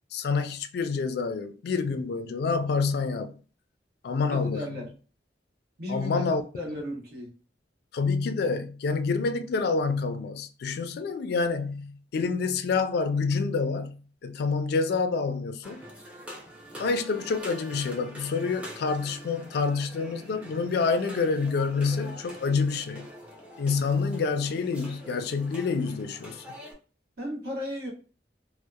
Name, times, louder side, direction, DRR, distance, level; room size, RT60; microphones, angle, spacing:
voice 1, 0.1-3.4 4.0-4.8 5.9-6.4 7.9-15.8 16.8-23.1 23.6-26.4, left 4 dB, 65° left, 0.3 m, -27 dB
voice 2, 4.3-4.9 5.8-7.3 27.2-27.9, left 1 dB, 60° right, 1.0 m, -35 dB
sound 1, 15.6-26.7, equal, 10° right, 0.5 m, -45 dB
2.8 x 2.0 x 2.2 m
head